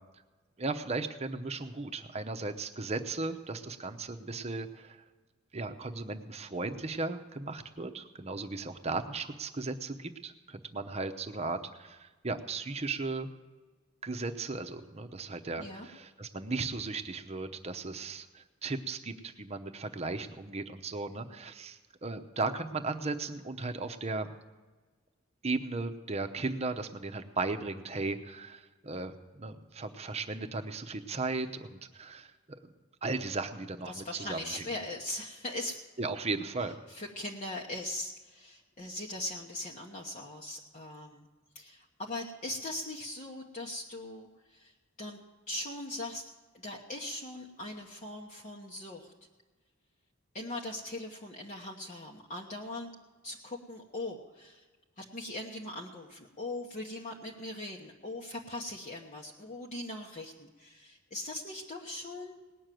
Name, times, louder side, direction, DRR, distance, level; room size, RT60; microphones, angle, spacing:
voice 1, 0.6-5.0 5.5-13.3 14.0-24.3 25.4-32.3 33.0-34.6 36.0-36.8, right 3 dB, 30° right, 7 dB, 0.8 m, -36 dB
voice 2, 33.8-35.8 36.9-41.3 41.5-45.2 45.5-46.2 46.5-49.1 50.3-52.9 53.2-54.6 55.0-62.4, left 1 dB, 35° left, -2 dB, 1.1 m, -40 dB
18.5 x 6.5 x 9.1 m, 1.3 s
head